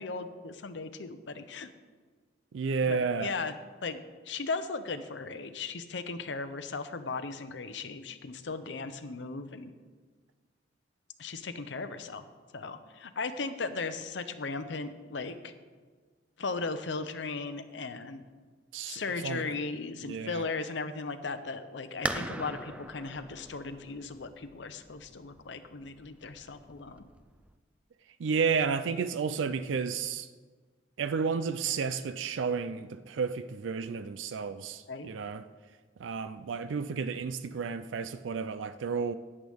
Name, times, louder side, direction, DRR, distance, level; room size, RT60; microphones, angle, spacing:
voice 1, 0.0-1.7 2.8-3.5 3.8-9.7 11.2-12.2 12.5-15.5 16.4-18.2 18.9-27.0 34.9-35.1, left 4 dB, 70° left, 0.7 m, -37 dB
voice 2, 2.5-3.3 18.7-19.4 20.0-20.5 28.2-30.3 31.0-35.5 36.0-39.1, right 5 dB, 85° right, 0.4 m, -32 dB
sound 1, 22.0-27.5, right 1 dB, 5° right, 0.4 m, -40 dB
14.0 x 10.0 x 3.5 m
head